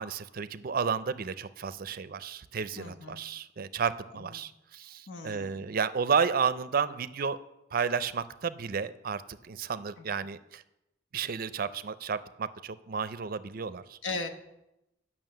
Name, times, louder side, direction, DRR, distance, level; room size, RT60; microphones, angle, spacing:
voice 1, 0.0-7.4 7.7-10.6 11.1-14.0, right 6 dB, 50° right, 14 dB, 0.4 m, -32 dB
voice 2, 2.8-3.2 5.1-5.6 14.0-14.3, left 3 dB, 75° left, 7 dB, 1.0 m, -37 dB
9.1 x 6.1 x 7.6 m, 0.90 s
head